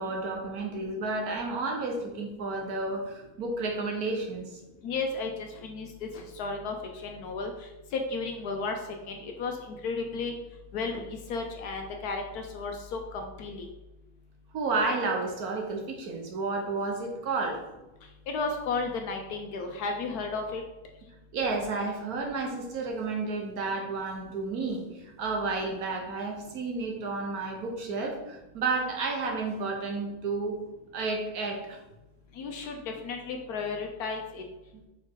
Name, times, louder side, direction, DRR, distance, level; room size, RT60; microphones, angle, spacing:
voice 1, 0.0-4.6 14.5-17.6 21.3-30.6 30.9-31.8, right 3 dB, 75° right, 1 dB, 1.6 m, -31 dB
voice 2, 4.8-6.7 7.0-7.5 7.9-8.7 9.1-10.3 10.7-13.7 18.3-20.6 32.4-34.4, left 4 dB, 80° left, 3 dB, 1.2 m, -33 dB
5.2 x 4.4 x 4.7 m, 1.0 s
omnidirectional pair, 1.6 m